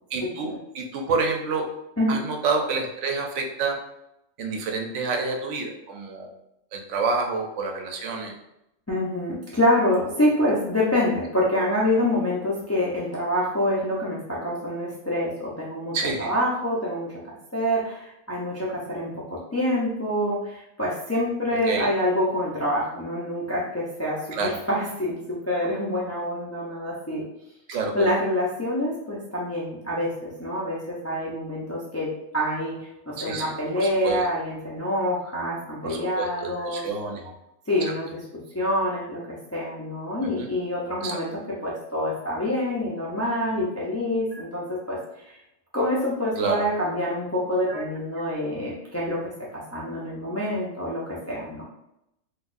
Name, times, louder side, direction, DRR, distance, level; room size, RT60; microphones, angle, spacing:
voice 1, 0.1-1.7 2.1-3.8 4.4-6.3 6.7-8.3 15.9-16.3 21.7-21.9 24.3-24.5 27.7-28.1 33.2-34.3 35.8-37.3 40.4-40.5 41.0-41.2 46.4-46.6 47.7-47.9, right 4 dB, 75° right, 2 dB, 0.9 m, -28 dB
voice 2, 8.9-17.2 17.5-27.3 27.9-36.8 37.7-45.4 45.7-51.6, left 1 dB, 20° left, -6 dB, 0.4 m, -26 dB
3.9 x 2.4 x 2.5 m, 0.84 s
omnidirectional pair, 1.3 m